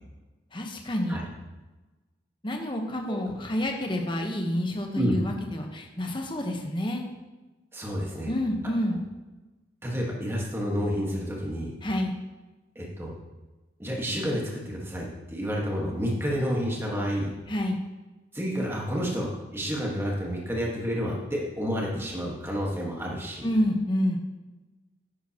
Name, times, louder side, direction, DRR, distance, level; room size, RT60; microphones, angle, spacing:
voice 1, 0.5-1.2 2.4-7.1 8.3-9.0 11.8-12.1 17.5-17.8 23.4-24.2, left 1 dB, 25° left, 2 dB, 1.0 m, -28 dB
voice 2, 7.7-8.3 9.8-11.7 12.7-13.1 13.8-17.3 18.3-23.5, equal, 15° right, -3 dB, 1.5 m, -30 dB
10.5 x 9.4 x 2.9 m, 1.2 s
head